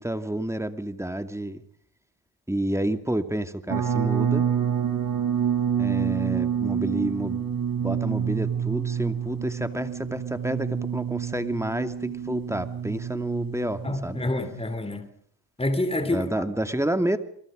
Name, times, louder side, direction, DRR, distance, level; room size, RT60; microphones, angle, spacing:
voice 1, 0.0-1.6 2.5-4.5 5.8-7.5 7.8-14.2 16.0-17.2, right 1 dB, 5° right, 2.5 m, -29 dB
sound 1, 3.7-14.6, right 8 dB, 50° right, 5.4 m, -28 dB
voice 2, 13.8-15.1 15.6-16.4, left 1 dB, 15° left, 3.2 m, -27 dB
28.5 x 23.0 x 5.2 m
cardioid pair, 70°, 44 cm